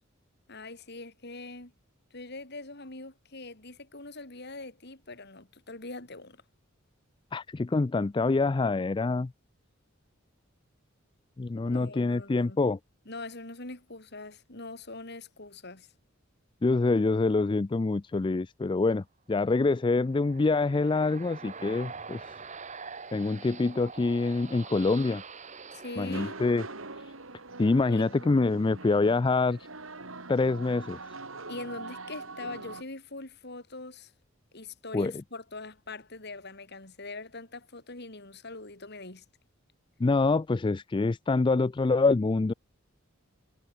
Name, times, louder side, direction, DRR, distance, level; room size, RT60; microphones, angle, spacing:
voice 1, 0.5-1.7 2.1-6.4 11.6-12.6 13.1-15.9 25.7-26.3 27.9-28.0 31.5-34.1 34.5-39.2, left 2 dB, 55° left, 4.8 m, -42 dB
voice 2, 7.3-9.3 11.4-12.8 16.6-22.3 23.1-25.2 26.0-26.6 27.6-29.6 30.3-31.2 34.9-35.1 40.0-42.5, left 3 dB, 25° left, 0.4 m, -26 dB
sound 1, 19.8-27.2, right 5 dB, 35° right, 2.4 m, -45 dB
sound 2, 26.0-32.8, right 3 dB, 85° right, 4.8 m, -43 dB
head